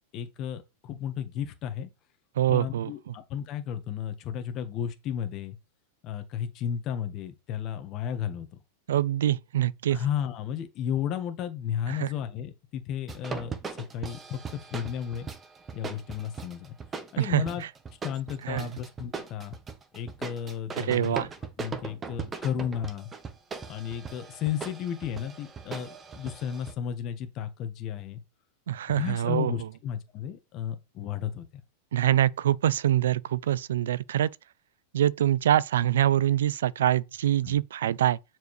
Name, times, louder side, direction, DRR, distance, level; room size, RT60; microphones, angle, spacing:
voice 1, 0.1-1.9 2.5-5.6 6.0-8.5 9.9-13.5 13.9-15.3 15.7-16.7 17.1-17.6 18.0-19.6 19.9-21.2 21.6-23.1 23.7-28.2 28.9-31.5 37.4-37.6, left 9 dB, 40° left, 1.3 m, -33 dB
voice 2, 2.4-2.9 8.9-10.0 11.9-12.1 17.2-17.4 18.4-18.7 20.8-21.3 28.7-29.5 31.9-34.3 34.9-38.2, right 11 dB, 85° right, 0.4 m, -24 dB
sound 1, 13.1-26.7, right 5 dB, 20° right, 1.0 m, -39 dB
6.7 x 4.5 x 3.2 m
supercardioid pair, 135°, 0 cm